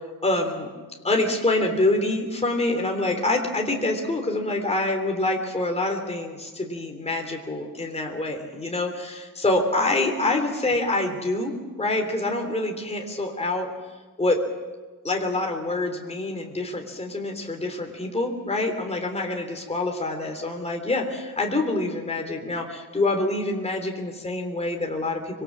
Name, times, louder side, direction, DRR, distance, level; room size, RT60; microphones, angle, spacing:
voice 1, 0.2-0.7 1.0-13.7 14.2-14.4 15.0-25.4, left 2 dB, 15° left, 2 dB, 3.4 m, -26 dB
25.5 x 23.5 x 7.5 m, 1.4 s
wide cardioid pair, 175°, 36 cm